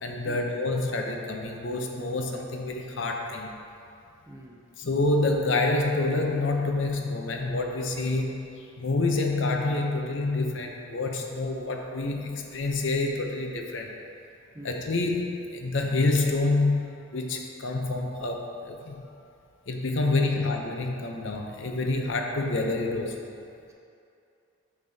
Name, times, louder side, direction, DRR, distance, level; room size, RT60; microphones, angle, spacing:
voice 1, 0.0-3.5 4.8-13.9 14.6-18.9 19.7-23.3, left 2 dB, 60° left, 2 dB, 0.6 m, -27 dB
voice 2, 4.3-4.7 14.5-14.8 20.2-20.5, right 1 dB, 15° right, -1 dB, 0.4 m, -45 dB
8.0 x 5.3 x 2.7 m, 2.6 s
head